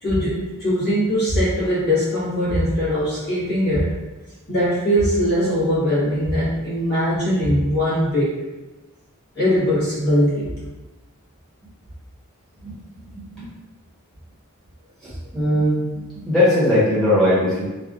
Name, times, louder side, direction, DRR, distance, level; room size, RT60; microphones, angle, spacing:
voice 1, 0.0-3.9 4.5-8.4 9.3-10.5, equal, 50° left, -11 dB, 1.4 m, -21 dB
voice 2, 15.3-15.8 16.3-17.7, left 1 dB, ahead, -11 dB, 1.1 m, -18 dB
3.3 x 2.3 x 2.4 m, 1.1 s
head